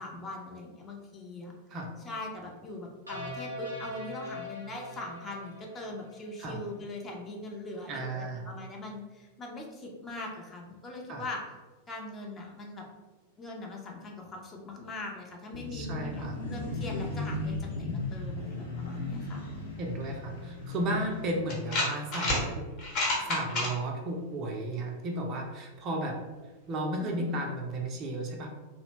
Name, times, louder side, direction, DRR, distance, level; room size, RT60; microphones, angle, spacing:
voice 1, 0.0-1.5 2.0-11.4 11.9-12.8 13.4-19.4 27.0-27.4, left 2 dB, 20° left, 0 dB, 0.5 m, -41 dB
sound 1, 3.1-6.4, left 1 dB, 85° right, 0.6 m, -42 dB
voice 2, 7.9-8.5 11.1-11.2 15.7-16.4 19.8-22.6 23.3-26.2 26.7-28.5, right 1 dB, 35° right, 1 dB, 0.4 m, -34 dB
sound 2, 15.5-21.4, left 2 dB, 70° left, 0.7 m, -36 dB
sound 3, 20.7-20.8 21.5-22.4 22.8-23.7, left 2 dB, 40° left, 0.9 m, -28 dB
2.7 x 2.0 x 2.9 m, 1.2 s
figure-of-eight pair, 90°, 0 cm